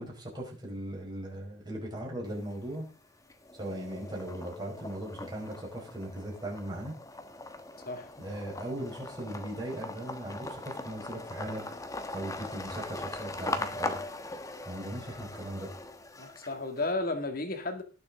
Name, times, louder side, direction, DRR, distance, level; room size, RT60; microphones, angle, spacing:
voice 1, 0.0-2.9 3.5-6.9 8.2-11.6 12.1-14.0 14.6-15.7, right 1 dB, 25° right, 4.8 m, -38 dB
sound 1, 2.3-2.9 3.3-16.8, left 2 dB, 20° left, 1.1 m, -40 dB
voice 2, 7.8-8.1 16.2-17.8, left 2 dB, 50° left, 2.0 m, -33 dB
18.5 x 7.0 x 3.6 m
head